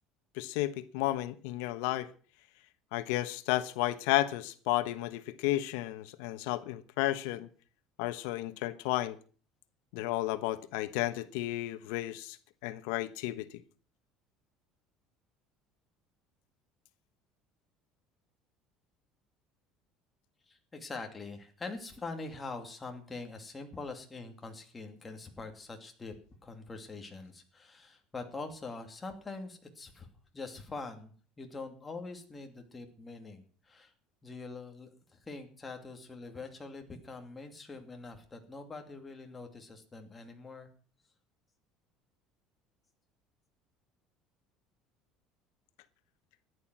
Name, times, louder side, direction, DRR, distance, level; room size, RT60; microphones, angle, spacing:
voice 1, 0.3-2.1 2.9-7.5 8.0-9.2 9.9-12.4 12.6-13.5, left 16 dB, 85° left, 1.1 m, -32 dB
voice 2, 20.5-30.1 30.3-33.9 34.2-40.7, left 3 dB, 15° left, 2.5 m, -44 dB
14.5 x 11.0 x 6.1 m
cardioid pair, 160°, 0 cm